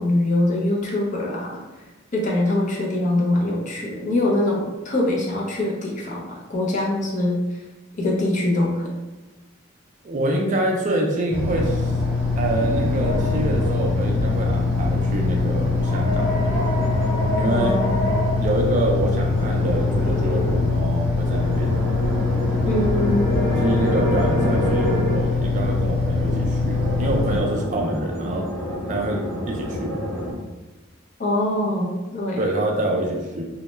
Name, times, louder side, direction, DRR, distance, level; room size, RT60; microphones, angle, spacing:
voice 1, 0.0-1.6 2.1-7.6 8.0-8.9 17.5-18.0 22.7-23.4 31.2-32.4, left 1 dB, 35° left, -3 dB, 0.5 m, -23 dB
voice 2, 10.0-11.9 12.4-16.3 17.3-17.7 18.4-21.7 23.6-28.4 28.9-29.9 32.4-33.5, right 1 dB, 35° right, 0 dB, 0.3 m, -26 dB
sound 1, 11.3-27.4, left 3 dB, 70° right, 0.7 m, -23 dB
sound 2, 13.0-13.9 15.7-18.4 19.2-20.6 21.2-25.3 26.7-30.3, equal, ahead, 0.9 m, -28 dB
2.1 x 2.0 x 3.0 m, 1.1 s
head